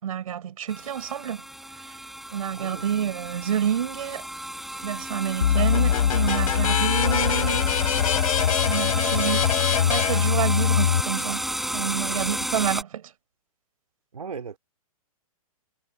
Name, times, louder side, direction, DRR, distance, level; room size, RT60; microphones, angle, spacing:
voice 1, 0.0-1.4 2.3-4.2 4.8-7.7 8.7-9.5 9.9-11.5 11.7-13.0, right 9 dB, 70° right, 4.9 m, -28 dB
sound 1, 0.7-12.8, right 1 dB, ahead, 8.0 m, -32 dB
voice 2, 2.6-2.9 14.1-14.6, right 6 dB, 90° right, 3.1 m, -37 dB
sound 2, 5.4-11.0, left 9 dB, 70° left, 3.7 m, -22 dB
hypercardioid pair, 130°, 19 cm